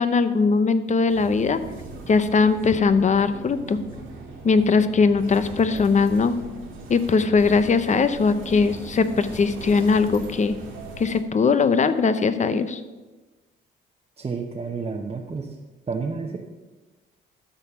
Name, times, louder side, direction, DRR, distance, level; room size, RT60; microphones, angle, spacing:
voice 1, 0.0-1.6 2.1-3.8 4.4-6.4 6.9-10.6 11.0-12.8, left 4 dB, 35° left, 12 dB, 0.7 m, -20 dB
sound 1, 1.1-11.2, right 3 dB, 90° right, 2.7 m, -39 dB
voice 2, 14.2-15.6 15.9-16.4, right 4 dB, 30° right, 0 dB, 1.0 m, -30 dB
12.5 x 4.3 x 6.9 m, 1.2 s
cardioid pair, 90°, 20 cm